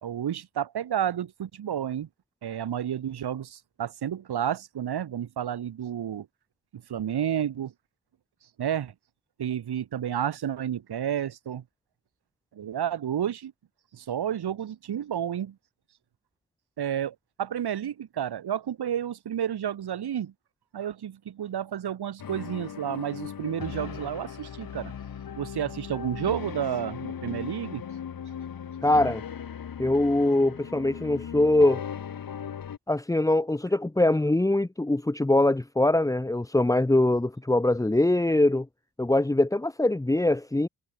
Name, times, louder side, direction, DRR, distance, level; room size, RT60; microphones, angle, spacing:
voice 1, 0.0-2.1 2.4-6.3 6.9-7.7 8.6-8.9 9.4-11.6 12.5-13.5 13.9-15.5 16.8-20.3 20.7-24.9 25.4-27.8, right 9 dB, 75° right, 2.4 m, -31 dB
sound 1, 22.2-32.8, left 8 dB, 60° left, 1.6 m, -38 dB
voice 2, 28.8-29.2 29.8-31.8 32.9-38.7 39.0-40.7, left 2 dB, 10° left, 0.8 m, -23 dB
supercardioid pair, 45°, 39 cm